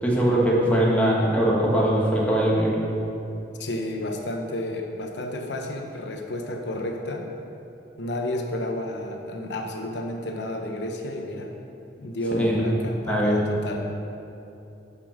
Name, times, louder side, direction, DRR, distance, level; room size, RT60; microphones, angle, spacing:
voice 1, 0.0-2.8 12.3-12.6 13.1-13.4, right 1 dB, 10° left, -4 dB, 1.5 m, -21 dB
voice 2, 3.5-7.3 8.0-11.5 12.0-13.9, left 1 dB, 90° left, 2 dB, 1.0 m, -31 dB
12.0 x 5.5 x 5.0 m, 2.8 s
head